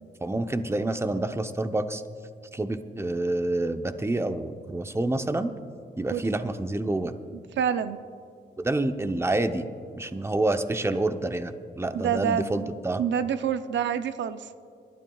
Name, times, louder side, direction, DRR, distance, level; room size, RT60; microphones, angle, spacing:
voice 1, 0.2-2.0 2.5-5.5 6.0-7.1 8.6-9.7 9.9-13.0, right 2 dB, 15° right, 8 dB, 0.7 m, -28 dB
voice 2, 7.6-8.0 11.9-12.7 13.0-14.4, right 8 dB, 80° right, 11 dB, 0.5 m, -27 dB
26.5 x 12.0 x 2.3 m, 2.4 s
cardioid pair, 65°, 19 cm